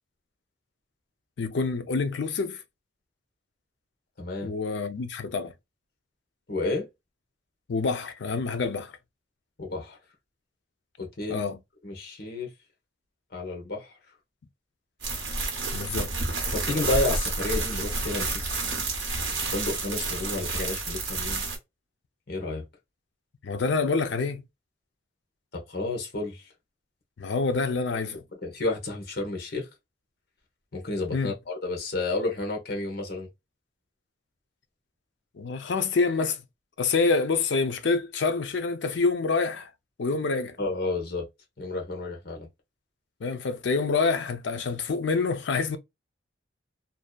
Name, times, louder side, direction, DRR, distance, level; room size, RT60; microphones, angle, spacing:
voice 1, 1.4-2.6 4.4-5.5 7.7-8.9 11.3-11.6 15.7-16.1 23.4-24.4 27.2-28.2 31.1-31.3 35.3-36.4 36.8-39.7 40.0-40.6 43.2-45.8, left 4 dB, 70° left, 0.4 m, -27 dB
voice 2, 4.2-4.5 6.5-6.9 9.6-10.0 11.0-11.4 11.8-12.5 13.3-13.9 16.5-18.6 19.5-21.4 22.3-22.6 25.5-26.5 28.4-29.7 30.7-33.3 40.6-41.3 41.6-42.5, left 2 dB, 50° left, 0.8 m, -31 dB
sound 1, 15.0-21.6, right 3 dB, 60° right, 0.9 m, -30 dB
2.6 x 2.2 x 2.2 m
head